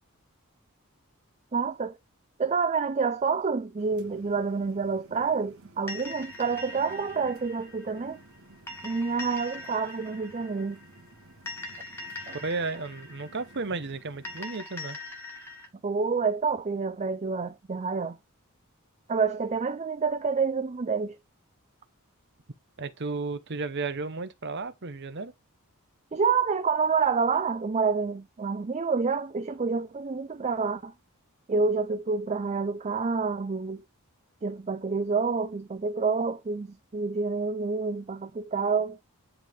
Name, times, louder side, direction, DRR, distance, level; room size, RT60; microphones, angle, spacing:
voice 1, 1.5-2.0 2.4-8.2 8.8-10.8 12.3-12.4 15.8-18.2 19.1-21.2 26.1-30.9 31.5-33.8 34.4-39.0, right 5 dB, 30° right, 0.4 m, -28 dB
sound 1, 3.8-14.4, right 2 dB, 65° right, 1.6 m, -54 dB
sound 2, 5.9-15.7, left 2 dB, 10° left, 1.6 m, -42 dB
voice 2, 12.3-15.0 22.8-25.3, right 3 dB, 50° right, 0.9 m, -33 dB
10.0 x 3.6 x 3.6 m
head